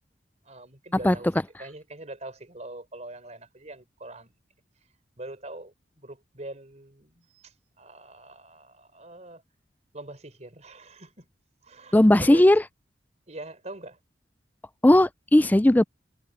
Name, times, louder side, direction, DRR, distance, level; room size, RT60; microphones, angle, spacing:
voice 1, 0.4-1.3 1.6-4.3 5.2-9.4 9.9-11.3 11.6-12.4 13.3-14.0, right 2 dB, 40° right, 4.6 m, -43 dB
voice 2, 11.9-12.6 14.8-15.8, left 1 dB, 10° left, 0.4 m, -17 dB
head